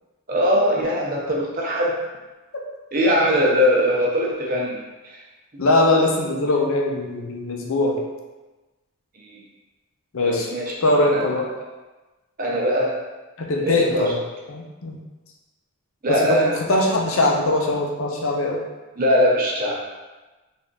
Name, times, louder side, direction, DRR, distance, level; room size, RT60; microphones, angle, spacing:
voice 1, 0.3-1.9 2.9-5.2 9.1-9.4 10.2-11.3 12.4-13.0 13.6-14.1 16.0-16.6 19.0-19.8, equal, 40° right, -3 dB, 0.7 m, -21 dB
voice 2, 5.6-8.0 10.1-10.5 10.8-11.5 13.4-14.2 14.5-15.0 16.1-18.6, left 2 dB, 65° left, 0 dB, 0.6 m, -21 dB
3.4 x 2.6 x 3.8 m, 1.2 s
head